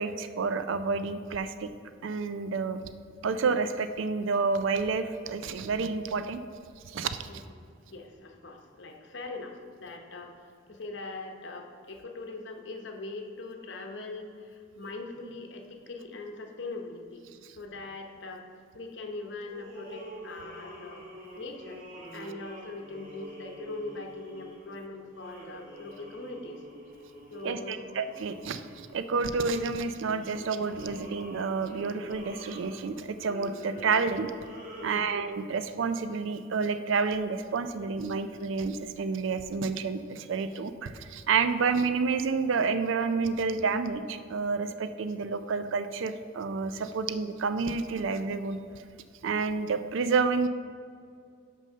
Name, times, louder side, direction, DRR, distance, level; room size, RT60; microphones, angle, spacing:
voice 1, 0.0-1.7 2.0-2.8 3.2-6.4 6.9-7.4 27.4-34.3 34.8-48.6 49.2-50.5, right 4 dB, 70° right, 10 dB, 0.4 m, -29 dB
voice 2, 7.3-7.6 7.9-17.2 17.5-18.4 18.7-21.1 21.4-21.8 22.1-26.6 27.3-27.9 34.8-35.1, left 3 dB, 60° left, 3 dB, 0.8 m, -41 dB
sound 1, 19.5-29.5 30.0-35.3, equal, 40° right, 1.7 m, -47 dB
6.3 x 5.4 x 5.5 m, 2.2 s
head